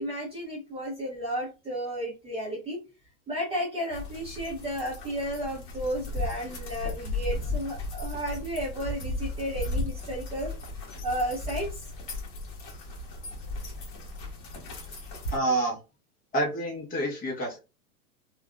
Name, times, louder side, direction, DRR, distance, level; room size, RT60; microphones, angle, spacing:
voice 1, 0.0-2.8 3.3-10.5 11.0-11.9, equal, 15° right, -5 dB, 0.7 m, -33 dB
sound 1, 3.9-15.4, left 2 dB, 35° left, 1.2 m, -35 dB
voice 2, 15.3-15.8 16.3-17.6, right 2 dB, 20° left, -1 dB, 0.9 m, -28 dB
3.3 x 2.3 x 2.3 m, 0.29 s
hypercardioid pair, 130°, 46 cm